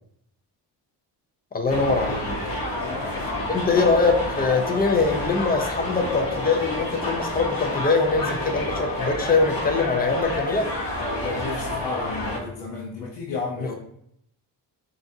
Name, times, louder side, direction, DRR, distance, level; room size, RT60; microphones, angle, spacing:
voice 1, 1.5-2.3 3.5-10.8 13.6-13.7, left 4 dB, 20° left, 4 dB, 0.5 m, -23 dB
sound 1, 1.7-12.4, left 1 dB, 55° left, 1.0 m, -29 dB
voice 2, 2.7-3.7 11.0-13.8, left 3 dB, 75° left, -3 dB, 0.8 m, -33 dB
3.9 x 3.4 x 2.7 m, 0.72 s
cardioid pair, 105°, 42 cm